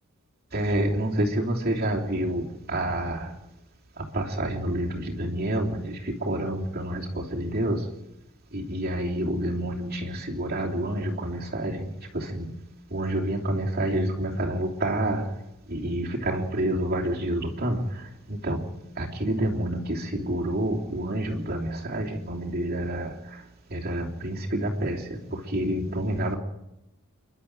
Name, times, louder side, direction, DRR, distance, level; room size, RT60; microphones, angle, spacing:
voice 1, 0.5-2.5 2.7-3.2 4.1-5.9 6.2-7.0 7.3-7.8 8.5-11.9 12.1-12.5 12.9-15.2 15.7-17.8 18.4-18.6 19.0-23.1 23.7-25.0 25.5-26.4, right 1 dB, 45° right, -1 dB, 3.1 m, -28 dB
29.5 x 12.0 x 8.9 m, 0.93 s
head